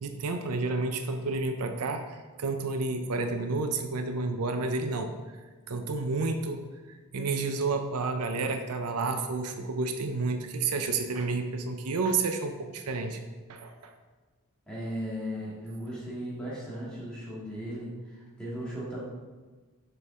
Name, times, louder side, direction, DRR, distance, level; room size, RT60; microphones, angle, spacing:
voice 1, 0.0-5.1 5.7-6.6 7.1-13.2 13.5-13.9, right 3 dB, 85° right, 6 dB, 0.6 m, -30 dB
voice 2, 14.7-19.0, equal, 5° left, -8 dB, 2.1 m, -37 dB
6.7 x 5.3 x 3.6 m, 1.3 s
head